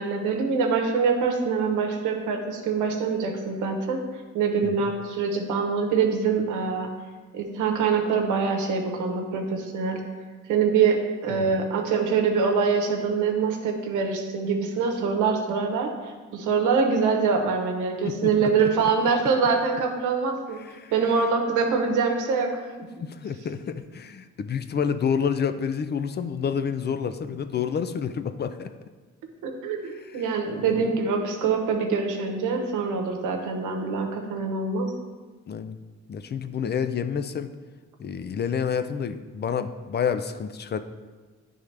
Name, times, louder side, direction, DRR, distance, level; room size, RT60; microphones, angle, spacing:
voice 1, 0.0-4.0 4.3-6.9 7.3-10.0 10.5-15.9 16.3-20.6 20.9-22.6 29.4-34.9, right 5 dB, 90° right, 3 dB, 0.9 m, -24 dB
voice 2, 11.3-11.7 18.0-19.1 20.6-21.3 23.0-28.7 29.9-30.3 30.6-30.9 35.5-35.8 36.1-37.5 38.0-40.8, left 7 dB, 35° left, 10 dB, 0.4 m, -29 dB
10.0 x 3.6 x 3.3 m, 1.4 s
cardioid pair, 90°, 30 cm